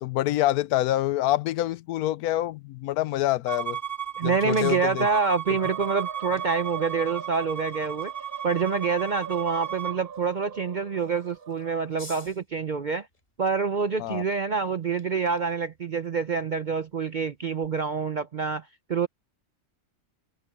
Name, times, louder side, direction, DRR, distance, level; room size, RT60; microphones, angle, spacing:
voice 1, 0.0-3.8 4.2-5.1 14.0-14.2, left 14 dB, 85° left, 1.1 m, -26 dB
sound 1, 3.2-17.7, left 2 dB, 30° left, 3.7 m, -55 dB
Bowed string instrument, 3.5-10.0, right 9 dB, 15° right, 1.0 m, -35 dB
voice 2, 4.2-8.1 8.4-13.1 13.4-19.1, right 5 dB, 55° right, 0.5 m, -27 dB
sound 2, 5.6-11.9, right 6 dB, 80° right, 4.7 m, -42 dB
omnidirectional pair, 1.6 m